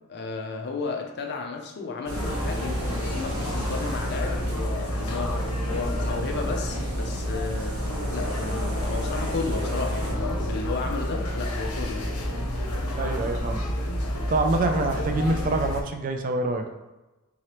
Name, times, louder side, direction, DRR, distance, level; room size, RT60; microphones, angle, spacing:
voice 1, 0.1-12.2, left 4 dB, 50° left, 3 dB, 0.5 m, -33 dB
sound 1, 2.1-15.8, equal, 85° left, 0.8 m, -29 dB
sound 2, 2.1-10.1, right 1 dB, 85° right, 0.9 m, -36 dB
voice 2, 13.0-13.6 14.3-16.7, right 2 dB, 40° right, 5 dB, 0.4 m, -25 dB
3.7 x 3.1 x 2.9 m, 1.1 s
head